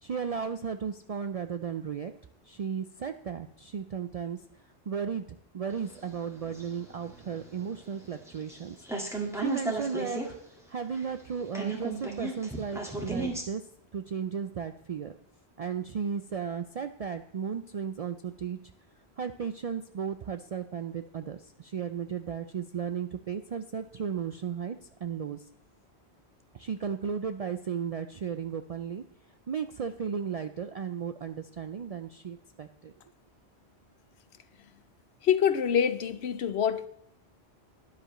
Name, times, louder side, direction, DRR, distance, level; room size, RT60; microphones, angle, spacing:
voice 1, 0.0-2.1 2.5-4.4 4.9-5.3 5.5-8.9 9.3-10.2 10.7-13.6 13.9-15.1 15.6-18.6 19.2-25.5 26.5-29.0 29.5-32.9, right 7 dB, 60° right, 9 dB, 0.4 m, -35 dB
sound 1, 5.7-8.6 8.8-10.3 10.6-10.7 10.9-13.4, right 2 dB, 5° right, 1.6 m, -35 dB
voice 2, 35.2-36.9, left 8 dB, 75° left, 13 dB, 0.9 m, -25 dB
12.5 x 10.0 x 3.0 m, 0.73 s
omnidirectional pair, 1.1 m